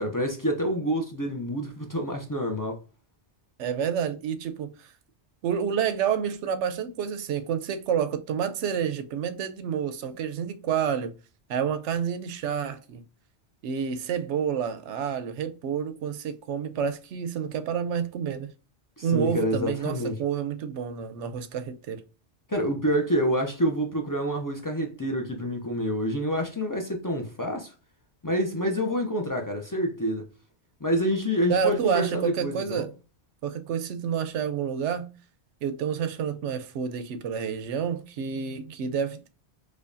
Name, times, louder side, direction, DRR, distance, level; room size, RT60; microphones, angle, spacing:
voice 1, 0.0-2.8 19.0-20.2 22.5-27.7 28.2-30.3 30.8-32.9, equal, 30° left, 0.4 m, -27 dB
voice 2, 3.6-4.7 5.4-11.1 11.5-13.0 13.6-18.5 19.0-22.0 31.5-32.9 33.4-35.1 35.6-39.3, right 7 dB, 85° right, 0.9 m, -29 dB
5.0 x 2.2 x 2.5 m
omnidirectional pair, 1.2 m